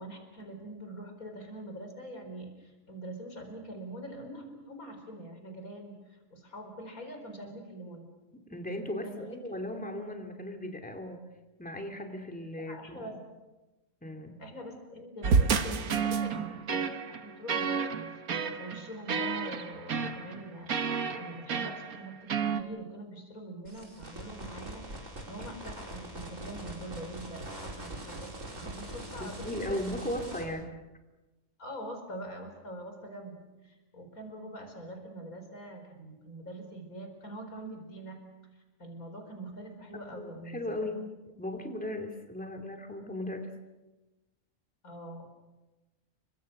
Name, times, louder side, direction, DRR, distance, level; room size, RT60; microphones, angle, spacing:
voice 1, 0.0-8.0 9.0-9.5 12.6-13.2 14.4-29.8 31.6-38.2 38.8-41.0 44.8-45.3, right 1 dB, 90° left, 5 dB, 5.0 m, -44 dB
voice 2, 8.5-11.2 11.6-13.1 14.0-14.4 29.2-30.7 40.1-41.0 41.4-43.5, left 1 dB, 5° left, 3 dB, 2.5 m, -37 dB
sound 1, 15.2-22.6, right 5 dB, 90° right, 1.8 m, -30 dB
sound 2, 23.7-30.4, right 1 dB, 65° right, 5.1 m, -42 dB
30.0 x 24.0 x 6.6 m, 1.1 s
omnidirectional pair, 1.5 m